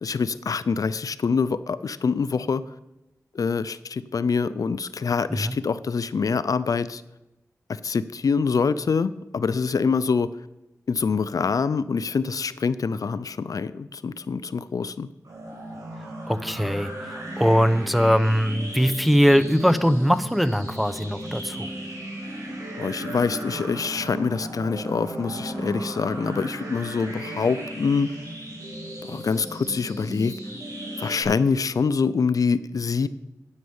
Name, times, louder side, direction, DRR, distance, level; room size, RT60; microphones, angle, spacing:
voice 1, 0.0-2.6 3.3-7.0 7.7-10.3 10.9-15.1 22.8-28.1 29.0-30.3 31.0-33.1, left 5 dB, 70° left, 15 dB, 0.4 m, -25 dB
sound 1, 15.2-31.2, right 1 dB, 65° right, 5.2 m, -36 dB
voice 2, 16.3-21.7, equal, ahead, 11 dB, 0.8 m, -21 dB
9.7 x 8.9 x 7.1 m, 0.98 s
wide cardioid pair, 65°, 6 cm